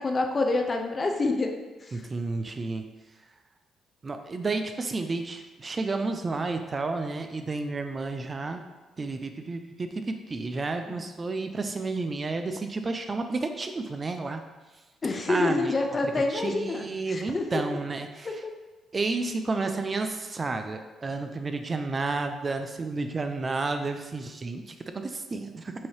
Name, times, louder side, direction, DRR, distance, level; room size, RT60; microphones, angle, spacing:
voice 1, 0.0-1.5 1.8-2.0 10.9-11.0 15.0-17.5, left 3 dB, 35° left, 4 dB, 0.5 m, -27 dB
voice 2, 1.9-2.9 4.0-8.6 9.0-14.4 15.3-15.8 16.3-18.4 18.9-25.7, right 3 dB, 30° right, 7 dB, 0.4 m, -31 dB
5.5 x 2.7 x 3.2 m, 1.2 s
cardioid pair, 90°, 0 cm